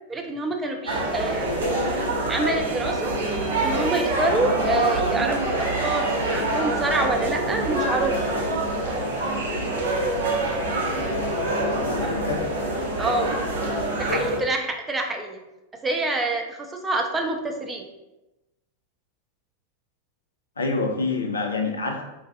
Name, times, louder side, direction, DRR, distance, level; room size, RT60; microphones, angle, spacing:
voice 1, 0.1-1.6 2.3-3.2 3.6-5.6 5.8-8.2 13.0-13.4 14.0-15.4 15.8-17.9, right 2 dB, 15° right, 3 dB, 0.4 m, -26 dB
sound 1, 0.9-14.4, right 1 dB, 70° right, 0.6 m, -25 dB
sound 2, 8.7-9.0 9.4-10.0, equal, 85° right, 1.3 m, -45 dB
voice 2, 11.7-12.5 20.6-22.0, left 3 dB, 75° left, 2 dB, 0.5 m, -27 dB
4.0 x 2.5 x 2.3 m, 0.99 s
figure-of-eight pair, 90°, 0 cm